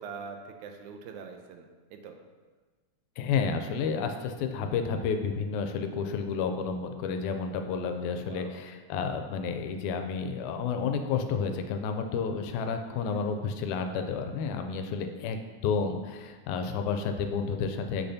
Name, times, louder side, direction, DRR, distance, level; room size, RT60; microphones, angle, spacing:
voice 1, 0.0-2.2 8.2-8.6 12.9-13.3, right 5 dB, 85° right, 5 dB, 2.1 m, -44 dB
voice 2, 3.2-15.4 15.6-18.1, left 5 dB, 85° left, 6 dB, 2.0 m, -31 dB
6.6 x 6.0 x 2.7 m, 1.4 s
omnidirectional pair, 3.4 m